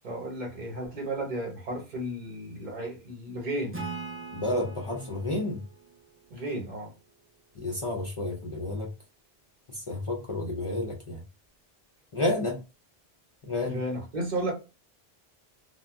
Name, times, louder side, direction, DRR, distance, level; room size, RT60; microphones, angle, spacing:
voice 1, 0.0-3.8 6.3-6.9 13.6-14.5, right 1 dB, 50° right, 1.0 m, -33 dB
Acoustic guitar / Strum, 3.7-7.2, right 4 dB, 15° right, 0.5 m, -42 dB
voice 2, 4.3-5.6 7.6-8.9 9.7-11.2 12.1-12.6 13.5-13.8, left 2 dB, 45° left, 0.4 m, -30 dB
2.3 x 2.1 x 3.4 m
omnidirectional pair, 1.1 m